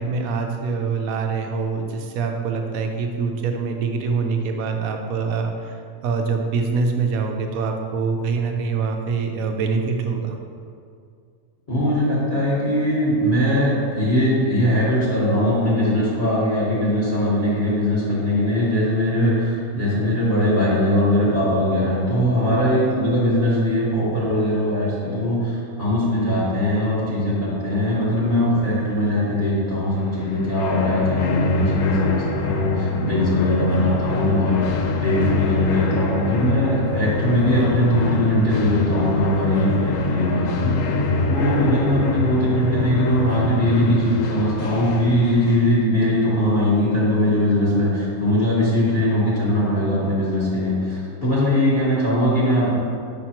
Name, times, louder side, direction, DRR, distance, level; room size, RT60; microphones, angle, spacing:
voice 1, 0.0-5.8 6.0-10.4, right 5 dB, 70° right, 3 dB, 1.0 m, -24 dB
voice 2, 11.7-40.9 41.3-52.7, left 1 dB, 35° left, -9 dB, 1.5 m, -20 dB
sound 1, 30.0-45.7, left 3 dB, 70° left, 0.8 m, -24 dB
5.8 x 5.6 x 2.9 m, 2.3 s
omnidirectional pair, 1.6 m